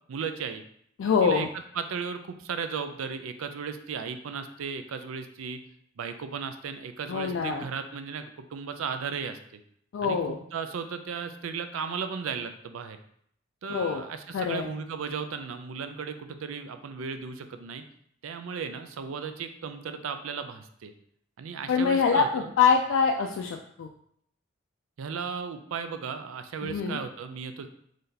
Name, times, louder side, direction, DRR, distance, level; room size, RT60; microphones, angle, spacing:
voice 1, 0.1-0.6 1.2-1.5 1.7-5.6 6.0-9.6 10.0-13.0 13.6-17.8 18.2-20.9 21.4-22.5 25.0-27.7, right 6 dB, 85° right, 8 dB, 0.4 m, -35 dB
voice 2, 1.0-1.5 7.1-7.7 9.9-10.4 13.7-14.0 14.3-14.7 21.7-23.9 26.6-27.0, left 6 dB, 75° left, 2 dB, 0.3 m, -24 dB
3.3 x 2.7 x 3.8 m, 0.67 s
head